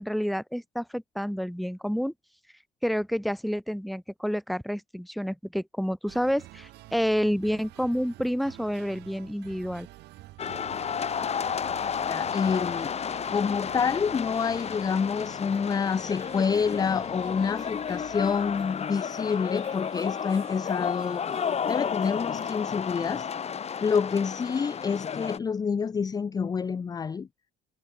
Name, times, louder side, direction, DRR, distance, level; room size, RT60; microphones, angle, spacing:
voice 1, 0.0-2.1 2.8-9.9, equal, ahead, 1.5 m, -29 dB
sound 1, 6.1-22.7, right 18 dB, 85° right, 5.2 m, -50 dB
sound 2, 10.4-25.4, left 7 dB, 40° left, 2.3 m, -32 dB
voice 2, 12.1-12.9 13.3-21.2 21.7-23.3 23.8-27.3, left 6 dB, 25° left, 0.5 m, -28 dB
cardioid pair, 110°, 17 cm